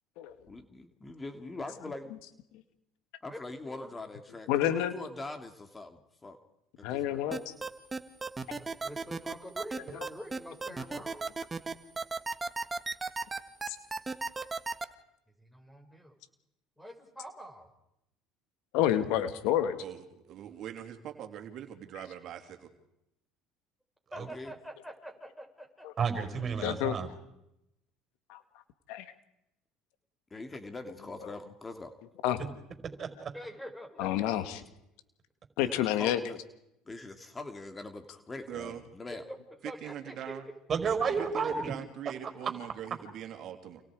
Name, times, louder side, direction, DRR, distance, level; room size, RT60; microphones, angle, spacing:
voice 1, 0.5-2.1 3.2-4.5 4.8-6.4 6.8-7.2 19.1-19.2 24.2-24.5 30.3-31.9 35.6-36.4 36.9-39.2, left 2 dB, 20° left, 6 dB, 2.6 m, -43 dB
voice 2, 3.3-3.9 8.5-11.3 15.4-16.1 16.8-17.7 24.1-26.0 33.3-34.6 39.3-39.4 39.6-40.1, equal, 5° left, 4 dB, 6.5 m, -46 dB
voice 3, 4.5-4.9 6.8-7.5 13.7-13.8 18.7-19.8 25.8-25.9 26.6-27.0 28.3-28.4 28.9-29.1 32.2-32.4 34.0-34.6 35.6-36.2, left 11 dB, 75° left, 10 dB, 2.1 m, -29 dB
sound 1, 7.3-14.8, right 3 dB, 20° right, 1.9 m, -34 dB
voice 4, 19.8-22.7 38.5-38.8 39.6-40.4 41.2-43.8, right 10 dB, 55° right, 6 dB, 3.0 m, -42 dB
voice 5, 26.0-27.1 33.0-33.3 40.7-41.7 42.4-42.5, right 6 dB, 40° right, 7 dB, 5.3 m, -31 dB
29.5 x 28.5 x 5.0 m, 0.85 s
supercardioid pair, 90°, 0 cm